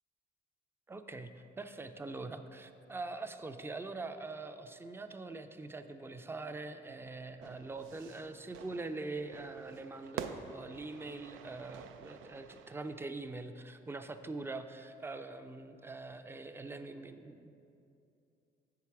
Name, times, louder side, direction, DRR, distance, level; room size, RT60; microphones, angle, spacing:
voice 1, 0.9-17.5, right 3 dB, 10° right, 8 dB, 0.4 m, -43 dB
Fire / Fireworks, 7.4-13.0, right 7 dB, 90° right, 0.4 m, -48 dB
8.1 x 4.8 x 5.8 m, 2.7 s
cardioid pair, 90°, 20 cm